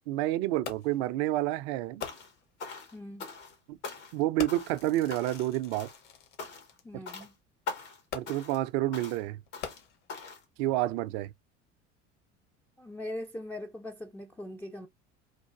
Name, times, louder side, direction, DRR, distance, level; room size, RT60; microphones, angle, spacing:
voice 1, 0.1-2.0 3.7-3.8 4.1-5.9 8.1-9.4 10.6-11.3, right 15 dB, 55° right, 0.5 m, -29 dB
Fireworks, 0.7-1.1 2.0-2.5 3.4-3.5 4.4-6.8 8.1-8.6 9.5-10.3 11.0-11.1, left 7 dB, 60° left, 1.1 m, -43 dB
sound 1, 2.0-2.3 2.6-3.6 3.8-4.2 4.5-4.8 5.1-5.5 5.7-6.0 6.4-6.8 7.1-7.3 7.7-8.0 8.3-8.6 8.9-9.2 9.5-9.8 10.1-10.4, left 4 dB, 80° left, 1.5 m, -42 dB
voice 2, 2.9-3.3 6.8-7.4 12.8-14.9, left 1 dB, 5° left, 0.3 m, -41 dB
3.3 x 2.5 x 2.4 m
hypercardioid pair, 65°, 35 cm